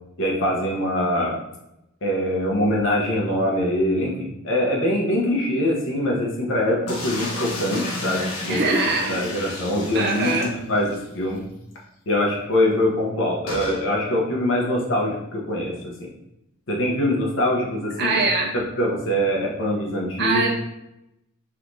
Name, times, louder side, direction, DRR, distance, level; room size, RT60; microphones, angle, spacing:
voice 1, 0.2-1.4 2.0-11.4 12.1-16.1 16.7-18.2 18.5-20.5, left 1 dB, 65° left, -3 dB, 0.9 m, -23 dB
sound 1, 6.9-11.1 11.4-11.5 11.7-11.8 13.5-13.8, left 2 dB, 80° left, 1.2 m, -32 dB
voice 2, 8.5-9.1 9.9-10.5 18.0-18.5 20.2-20.5, right 3 dB, 50° right, 1 dB, 0.6 m, -22 dB
5.5 x 3.0 x 2.7 m, 0.87 s
head